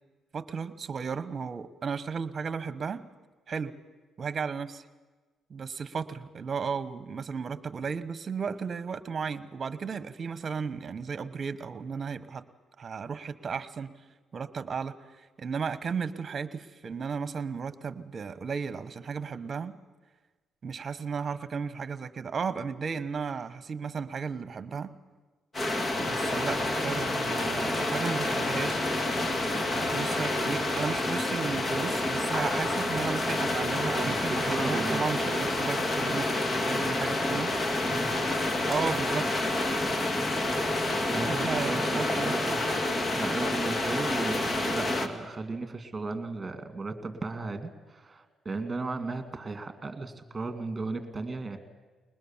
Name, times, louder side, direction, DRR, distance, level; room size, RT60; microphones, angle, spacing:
voice 1, 0.3-3.1 3.5-3.7 4.2-4.8 5.5-12.4 12.8-13.9 14.3-19.8 20.6-25.0 26.0-28.8 29.7-37.5 38.6-39.3 41.2-42.4, right 5 dB, 45° right, 13 dB, 1.1 m, -34 dB
sound 1, 25.5-45.1, left 2 dB, 30° left, 1.9 m, -28 dB
voice 2, 34.0-35.0 37.9-38.2 41.1-42.6 43.1-51.6, right 3 dB, 25° right, 9 dB, 2.3 m, -35 dB
21.5 x 20.0 x 7.3 m, 1.3 s
cardioid pair, 90°, 0 cm